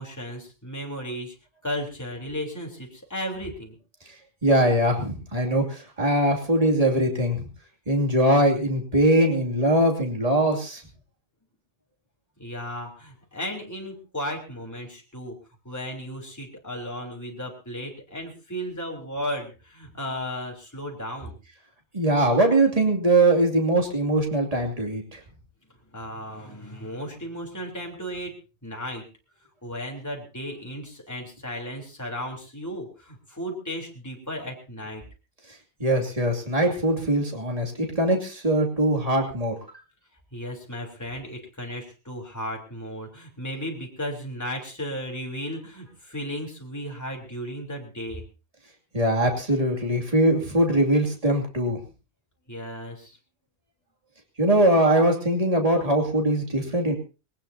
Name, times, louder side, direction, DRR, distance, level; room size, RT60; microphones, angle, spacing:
voice 1, 0.0-1.3 1.6-3.8 12.4-15.4 15.6-21.3 25.9-28.3 28.6-29.1 29.6-35.0 40.3-48.2 52.5-53.2, equal, 15° left, 0 dB, 3.6 m, -35 dB
voice 2, 4.4-7.5 7.9-10.8 21.9-25.2 35.8-39.5 48.9-51.8 54.4-56.9, right 1 dB, 35° right, 1 dB, 2.8 m, -22 dB
20.5 x 19.0 x 2.8 m, 0.32 s
omnidirectional pair, 1.1 m